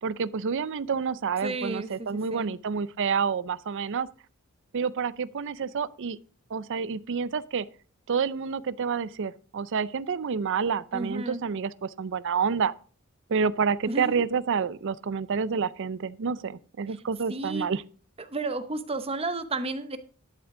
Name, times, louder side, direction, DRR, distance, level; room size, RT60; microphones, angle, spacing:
voice 1, 0.0-4.1 4.7-6.2 6.5-7.7 8.1-12.7 13.3-17.8, right 6 dB, 55° right, 0.5 m, -28 dB
voice 2, 1.4-2.5 10.9-11.4 13.9-14.2 17.3-17.7 18.2-20.0, right 2 dB, 25° right, 0.9 m, -32 dB
11.5 x 8.0 x 3.7 m
head